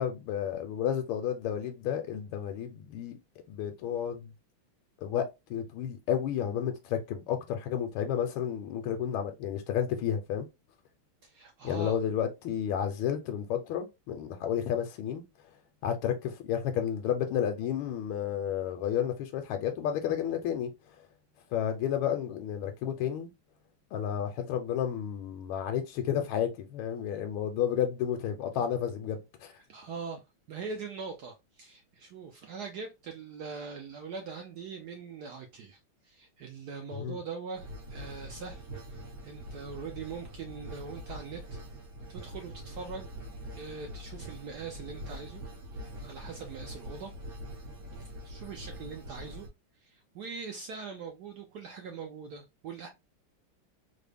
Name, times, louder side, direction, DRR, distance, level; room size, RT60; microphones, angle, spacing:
voice 1, 0.0-3.2 3.5-4.3 5.0-10.5 11.6-15.2 15.8-20.7 21.5-23.3 23.9-29.5 37.0-37.2, left 9 dB, 80° left, 1.4 m, -31 dB
voice 2, 11.2-12.0 29.7-30.2 30.5-35.8 36.0-38.6 38.9-41.6 42.1-43.1 43.5-45.4 45.7-47.1 48.2-49.5 49.8-52.9, right 5 dB, 70° right, 0.9 m, -42 dB
sound 1, 37.5-49.5, equal, 50° right, 1.6 m, -44 dB
3.8 x 2.1 x 3.4 m
omnidirectional pair, 2.3 m